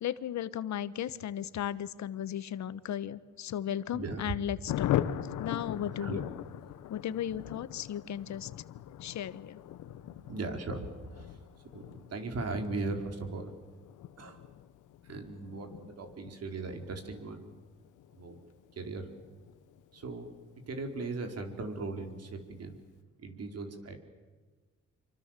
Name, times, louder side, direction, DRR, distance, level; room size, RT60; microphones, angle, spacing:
voice 1, 0.0-5.0 5.4-6.2 6.9-8.5 9.0-9.6, left 10 dB, 65° left, 15 dB, 1.2 m, -35 dB
voice 2, 3.9-4.3 6.0-6.3 10.3-11.4 11.7-13.5 14.2-14.4 15.0-17.5 18.1-18.4 18.8-19.1 19.9-20.3 20.7-22.8 23.2-24.0, right 3 dB, 55° right, 5 dB, 4.8 m, -38 dB
Thunder, 4.7-20.8 21.1-21.2 21.5-21.6 21.9-22.3, left 12 dB, 90° left, 1.3 m, -40 dB
27.5 x 25.0 x 7.6 m, 1.3 s
cardioid pair, 90°, 30 cm